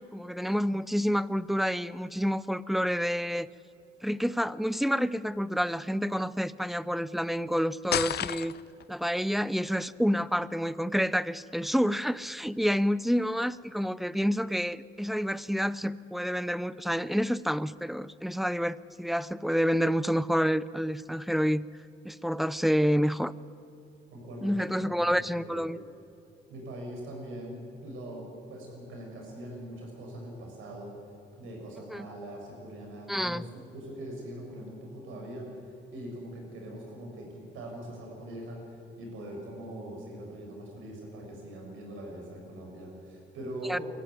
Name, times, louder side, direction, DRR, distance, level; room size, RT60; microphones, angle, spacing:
voice 1, 0.1-3.5 4.0-8.5 8.9-21.7 22.0-23.3 24.4-25.8 31.9-32.1 33.1-33.4 43.7-43.8, equal, ahead, 17 dB, 0.6 m, -28 dB
sound 1, 7.9-8.9, left 11 dB, 55° left, 0.6 m, -30 dB
voice 2, 24.1-25.6 26.5-28.2 28.5-30.9 31.4-43.8, right 1 dB, 90° right, 0 dB, 7.0 m, -42 dB
23.5 x 14.5 x 9.5 m, 2.8 s
cardioid pair, 90°, 20 cm